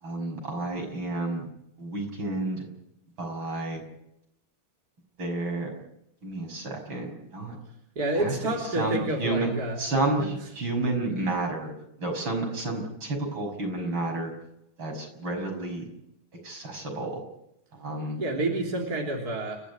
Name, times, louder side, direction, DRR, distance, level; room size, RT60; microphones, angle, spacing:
voice 1, 0.0-1.4 1.8-2.7 3.2-3.8 5.2-5.7 6.2-7.6 8.1-9.5 9.8-11.7 12.0-14.3 14.8-15.8 16.4-17.2 17.7-18.2, right 2 dB, 75° right, 2 dB, 6.9 m, -30 dB
voice 2, 8.0-9.8 10.2-10.3 18.2-19.6, right 2 dB, 45° right, 0 dB, 4.0 m, -28 dB
29.5 x 12.0 x 9.5 m, 0.81 s
omnidirectional pair, 2.2 m